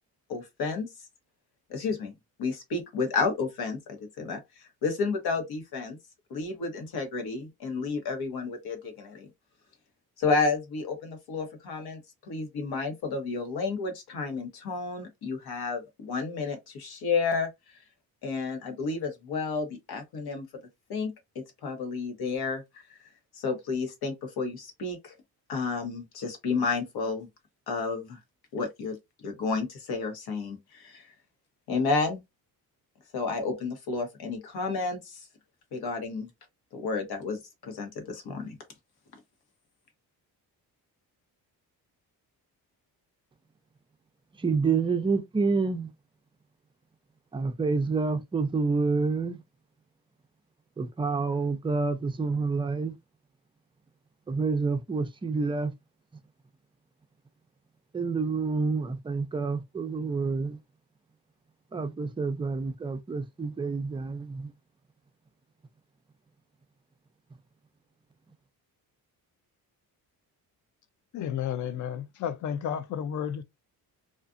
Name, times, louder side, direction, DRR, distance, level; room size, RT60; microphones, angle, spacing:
voice 1, 0.3-0.9 1.7-2.1 2.4-4.4 4.8-6.0 6.3-9.3 10.2-12.0 12.3-17.5 18.2-20.4 20.9-21.1 21.6-22.6 22.9-23.0 23.3-25.1 25.5-27.3 27.7-28.2 28.5-29.0 29.2-31.1 31.7-32.2 33.1-35.2 35.7-36.3 36.7-38.6, left 4 dB, 70° left, 1.1 m, -31 dB
voice 2, 44.4-45.9 47.3-49.4 50.8-53.0 54.3-55.7 57.9-60.6 61.7-64.5, right 4 dB, 15° right, 0.4 m, -28 dB
voice 3, 71.1-73.4, left 9 dB, 50° left, 0.4 m, -32 dB
2.4 x 2.4 x 2.5 m
cardioid pair, 105°, 38 cm